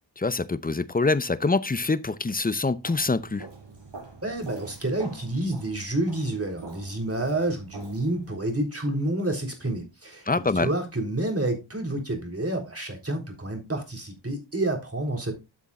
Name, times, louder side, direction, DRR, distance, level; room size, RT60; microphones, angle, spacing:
voice 1, 0.2-3.5 10.3-10.7, left 3 dB, 20° left, 0.7 m, -25 dB
Walk footsteps, 2.8-8.4, right 3 dB, 65° right, 6.1 m, -45 dB
voice 2, 4.2-10.3 10.5-15.3, right 1 dB, 30° right, 3.8 m, -29 dB
12.0 x 7.2 x 2.4 m
cardioid pair, 55°, 46 cm